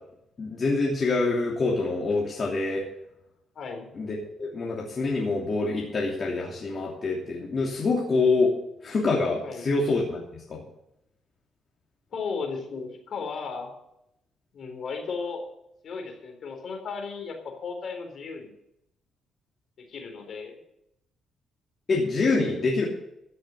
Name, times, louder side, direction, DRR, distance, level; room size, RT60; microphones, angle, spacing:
voice 1, 0.4-2.8 3.9-8.5 8.8-10.2 10.5-10.6 21.9-22.8, left 3 dB, 45° left, -3 dB, 2.9 m, -26 dB
voice 2, 3.6-3.9 9.4-9.6 12.1-13.7 14.5-15.4 15.8-18.5 19.8-20.6, left 5 dB, 60° left, 3 dB, 3.9 m, -35 dB
14.5 x 6.6 x 8.2 m, 0.79 s
cardioid pair, 90°, 0 cm